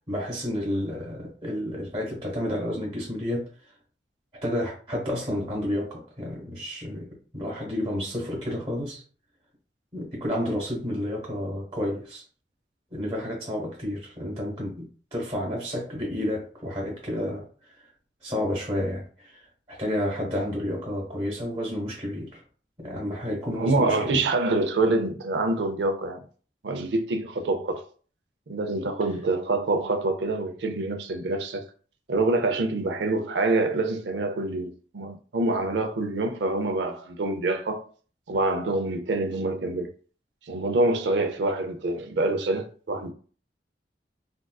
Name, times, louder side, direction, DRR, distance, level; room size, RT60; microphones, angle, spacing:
voice 1, 0.1-3.5 4.4-9.0 9.9-12.2 12.9-17.4 18.2-19.4 19.7-22.4 22.8-24.2, left 1 dB, 25° right, 1.1 m, -30 dB
voice 2, 23.5-26.2 26.6-27.8 28.5-31.6 32.1-37.8 38.3-39.9 40.5-43.1, right 2 dB, 80° right, 0.5 m, -26 dB
3.5 x 2.5 x 2.3 m
head